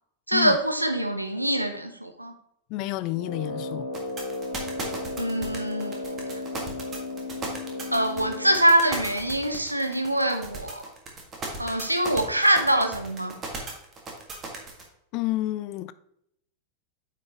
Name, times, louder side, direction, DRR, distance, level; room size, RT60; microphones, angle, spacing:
voice 1, 0.3-2.3 5.2-6.2 7.9-10.8 11.6-13.3, right 1 dB, 85° right, 0.8 m, -24 dB
voice 2, 2.7-3.9 15.1-15.9, left 16 dB, 40° left, 0.4 m, -29 dB
Brass instrument, 3.1-8.7, left 2 dB, 70° left, 1.3 m, -34 dB
sound 1, 3.9-14.8, right 3 dB, 25° right, 1.9 m, -36 dB
8.8 x 5.8 x 3.1 m
figure-of-eight pair, 90°, 0 cm